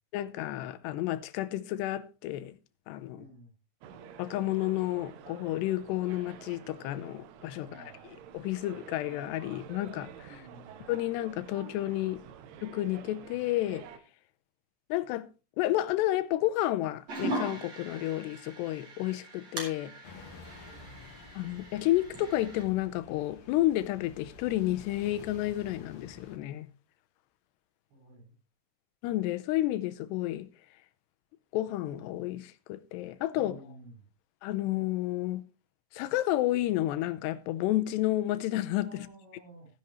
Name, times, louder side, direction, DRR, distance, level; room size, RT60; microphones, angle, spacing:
voice 1, 0.1-2.5 2.9-3.2 4.2-10.4 10.9-12.2 12.6-13.9 14.9-15.3 15.6-19.9 21.4-26.7 29.0-30.5 31.5-33.6 34.4-35.4 35.9-38.9, left 15 dB, 85° left, 2.9 m, -31 dB
voice 2, 3.1-3.5 7.6-8.0 10.2-10.8 20.6-21.0 27.9-28.3 33.3-34.1 38.8-39.7, right 2 dB, 90° right, 7.3 m, -52 dB
sound 1, 3.8-14.0, right 8 dB, 75° right, 3.0 m, -50 dB
sound 2, 17.1-22.6, right 1 dB, 40° right, 4.9 m, -40 dB
sound 3, 20.0-26.4, left 4 dB, 50° left, 2.4 m, -51 dB
16.0 x 10.5 x 3.1 m
omnidirectional pair, 4.9 m